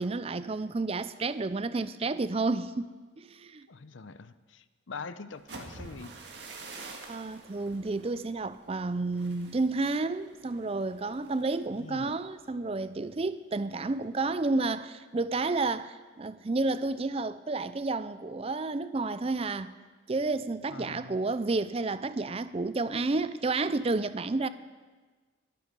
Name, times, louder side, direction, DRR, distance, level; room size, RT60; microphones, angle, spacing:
voice 1, 0.0-3.7 7.1-19.7 20.1-24.5, right 3 dB, 30° right, 0.4 m, -31 dB
voice 2, 3.7-6.2 11.8-12.2 20.7-21.2, left 4 dB, 70° left, 0.7 m, -43 dB
sound 1, 5.3-13.2 13.5-13.9 14.2-14.6, right 3 dB, 55° right, 1.8 m, -49 dB
22.0 x 9.3 x 5.3 m
head